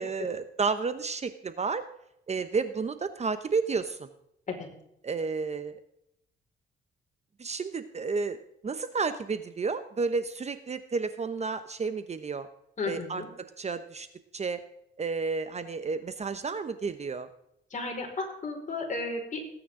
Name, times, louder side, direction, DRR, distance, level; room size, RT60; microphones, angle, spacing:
voice 1, 0.0-1.8 2.3-4.1 5.0-5.8 7.4-8.4 8.6-12.5 12.9-14.1 14.3-14.6 15.0-17.3, right 4 dB, 35° right, 11 dB, 0.9 m, -31 dB
voice 2, 12.8-13.3 17.7-19.4, left 3 dB, 40° left, 1 dB, 5.0 m, -33 dB
20.0 x 9.2 x 3.8 m, 0.79 s
cardioid pair, 90°, 20 cm